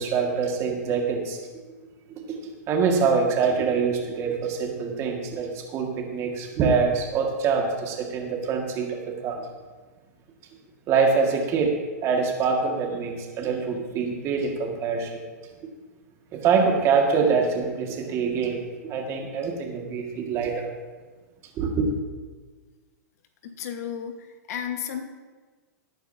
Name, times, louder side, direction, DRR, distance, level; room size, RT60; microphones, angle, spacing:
voice 1, 0.0-1.4 2.3-2.4 2.7-9.5 10.9-11.7 12.0-15.1 16.3-20.6 21.6-21.9, right 5 dB, 30° right, 1 dB, 1.8 m, -25 dB
voice 2, 23.4-25.0, left 8 dB, 65° left, 6 dB, 1.4 m, -33 dB
19.0 x 9.1 x 2.7 m, 1.4 s
hypercardioid pair, 145°, 9 cm